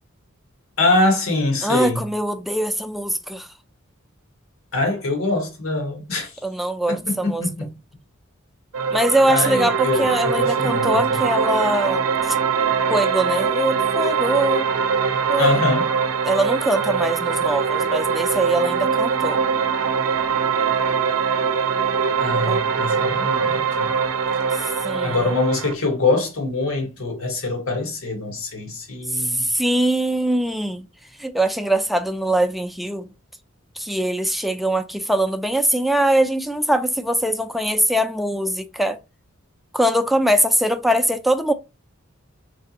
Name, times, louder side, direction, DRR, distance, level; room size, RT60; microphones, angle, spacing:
voice 1, 0.8-2.0 4.7-6.3 6.9-7.7 9.3-11.2 15.4-15.9 22.2-23.9 25.0-29.5, left 2 dB, 80° left, 1.4 m, -23 dB
voice 2, 1.6-3.5 6.4-7.4 8.9-12.0 12.3-12.4 12.9-14.7 15.3-15.5 16.2-19.4 22.4-22.6 24.8-25.3 29.1-30.9 31.2-33.1 33.8-39.0 39.7-41.5, right 1 dB, ahead, 0.4 m, -22 dB
sound 1, 8.7-25.7, right 6 dB, 85° right, 0.5 m, -22 dB
3.8 x 3.4 x 2.8 m
head